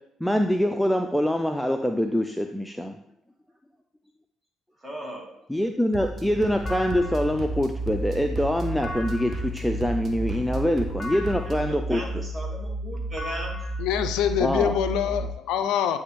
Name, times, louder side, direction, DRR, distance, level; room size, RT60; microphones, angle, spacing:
voice 1, 0.2-3.0 5.5-12.2 14.4-14.7, equal, 5° left, 6 dB, 0.4 m, -25 dB
voice 2, 4.8-5.3 11.5-13.6, right 1 dB, 25° right, -1 dB, 2.0 m, -37 dB
sound 1, 5.9-11.5, right 3 dB, 50° right, 0.8 m, -37 dB
sound 2, 6.7-15.3, right 1 dB, 30° left, 1.0 m, -32 dB
voice 3, 13.8-16.0, left 9 dB, 75° left, 10 dB, 0.3 m, -25 dB
9.2 x 3.3 x 3.1 m, 0.75 s
hypercardioid pair, 50°, 0 cm